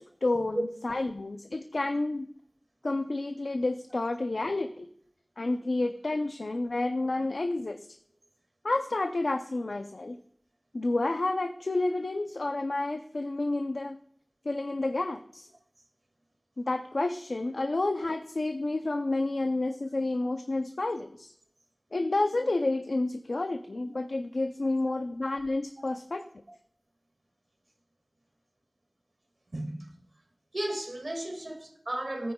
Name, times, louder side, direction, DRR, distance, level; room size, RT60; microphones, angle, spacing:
voice 1, 0.0-2.3 2.8-4.9 5.4-7.8 8.6-10.2 10.7-14.0 14.5-15.5 16.6-21.3 21.9-26.2, left 2 dB, 90° left, 0.5 m, -30 dB
voice 2, 29.5-30.0 30.5-32.3, right 1 dB, 65° right, 2.0 m, -34 dB
14.5 x 9.3 x 2.3 m
wide cardioid pair, 45°, 0 cm